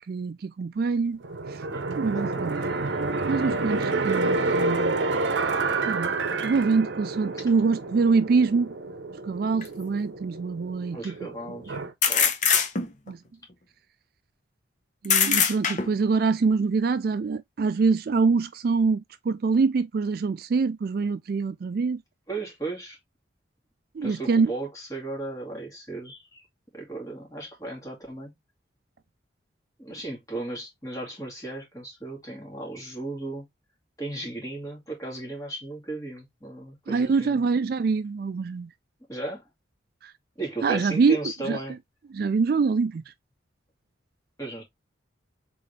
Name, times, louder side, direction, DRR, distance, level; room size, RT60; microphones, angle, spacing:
voice 1, 0.1-1.2 1.5-1.6 1.9-2.6 3.3-5.0 5.9-8.7 9.3-11.1 13.1-13.2 15.0-22.0 24.0-24.5 36.9-38.7 40.0-40.1 40.6-41.2 41.4-41.6 42.1-43.0, right 4 dB, 50° right, 0.3 m, -24 dB
sound 1, 1.2-11.9, right 3 dB, 65° right, 0.8 m, -29 dB
voice 2, 1.7-2.6 10.9-12.3 22.3-23.0 24.0-26.5 26.7-28.3 29.8-33.5 34.0-37.4 39.1-39.4 40.4-41.8 44.4-44.6, right 2 dB, 15° left, 2.3 m, -36 dB
sound 2, 9.6-9.7 12.0-13.1 15.0-16.1, left 7 dB, 40° left, 0.8 m, -22 dB
4.2 x 3.8 x 3.2 m
head